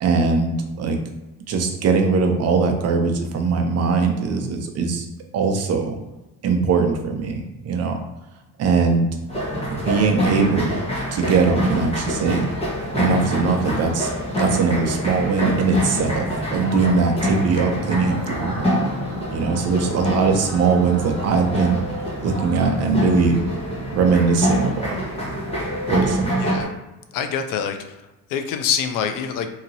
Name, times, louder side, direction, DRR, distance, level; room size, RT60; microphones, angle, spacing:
voice 1, 0.0-1.0 1.5-5.1 5.3-6.0 6.4-8.0 8.6-9.1 9.7-10.7 11.1-12.5 12.9-14.1 14.4-18.7 19.3-21.8 22.2-23.4 23.9-25.0 25.9-26.5, right 4 dB, 50° right, 4 dB, 0.6 m, -21 dB
sound 1, 9.3-26.7, equal, 20° left, 0.9 m, -26 dB
voice 2, 26.4-26.8 27.1-27.8 28.3-29.5, left 7 dB, 75° left, 8 dB, 0.5 m, -25 dB
2.9 x 2.8 x 2.6 m, 1.0 s
cardioid pair, 135°, 33 cm